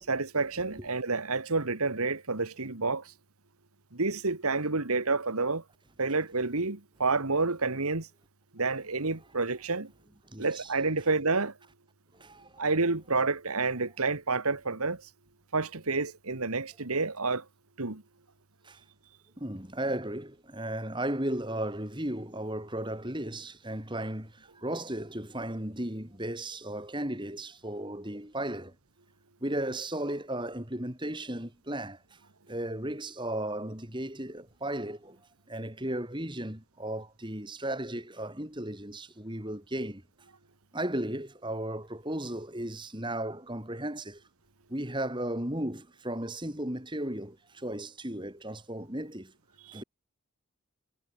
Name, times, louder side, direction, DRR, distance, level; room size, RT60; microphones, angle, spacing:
voice 1, 0.1-3.1 3.9-5.6 6.0-8.1 8.5-9.9 10.4-11.5 12.6-15.0 15.5-17.4 17.8-18.0 49.7-49.8, right 3 dB, 85° right, 2.0 m, -29 dB
voice 2, 10.3-10.7 12.1-12.6 18.6-18.8 19.4-28.7 29.4-32.0 32.5-35.2 35.5-40.0 40.7-44.2 44.7-49.3 49.7-49.8, right 1 dB, 20° right, 3.4 m, -35 dB
head